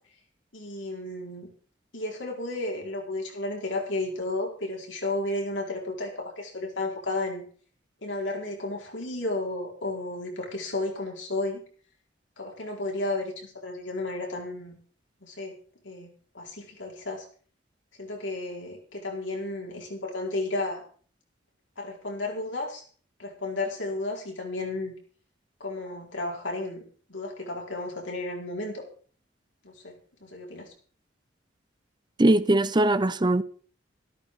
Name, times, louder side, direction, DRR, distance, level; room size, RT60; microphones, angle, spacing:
voice 1, 0.5-1.5 1.9-7.4 8.0-11.6 12.4-14.8 15.2-15.5 15.8-17.2 18.0-20.8 21.8-22.8 23.2-24.9 25.6-26.8 27.1-28.8 29.6-29.9 30.2-30.7, left 2 dB, 80° left, 4.8 m, -33 dB
voice 2, 32.2-33.4, right 1 dB, 25° right, 0.7 m, -21 dB
13.5 x 12.5 x 4.9 m
head